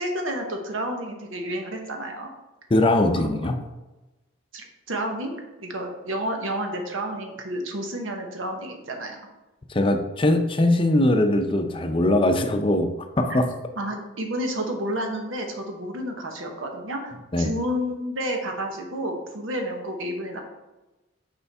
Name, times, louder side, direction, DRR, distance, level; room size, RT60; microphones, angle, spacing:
voice 1, 0.0-2.3 4.5-9.2 13.3-13.4 13.8-20.4, equal, 90° right, 3 dB, 1.1 m, -30 dB
voice 2, 2.7-3.6 9.7-12.9 13.2-13.5 17.3-17.5, left 1 dB, 25° left, 6 dB, 0.5 m, -21 dB
6.8 x 4.5 x 3.5 m, 1.1 s
head